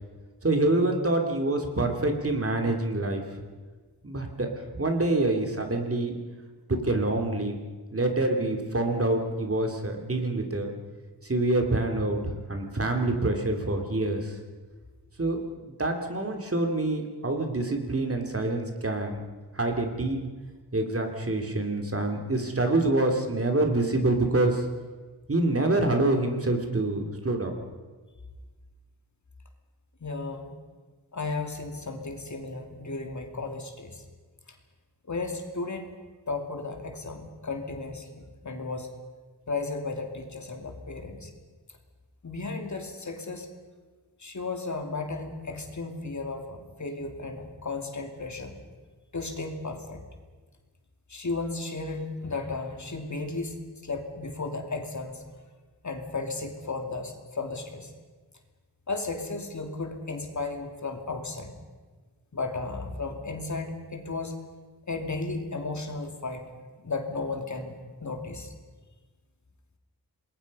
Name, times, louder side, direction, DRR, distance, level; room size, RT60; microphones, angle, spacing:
voice 1, 0.4-3.4 4.0-6.1 6.7-7.6 7.9-10.7 11.2-14.4 15.2-15.4 15.7-19.2 19.5-20.2 20.7-24.7 25.3-27.5, right 2 dB, 35° right, 3 dB, 2.9 m, -26 dB
voice 2, 30.0-30.6 31.1-34.0 35.1-36.0 36.3-38.9 39.5-41.3 42.2-43.5 44.2-48.5 49.1-50.0 51.1-53.5 53.8-55.2 55.8-57.9 58.9-61.5 62.3-64.4 64.9-66.4 66.8-67.7 68.0-68.5, left 3 dB, 45° left, 4 dB, 2.7 m, -34 dB
28.0 x 21.0 x 5.5 m, 1.4 s
wide cardioid pair, 110°, 41 cm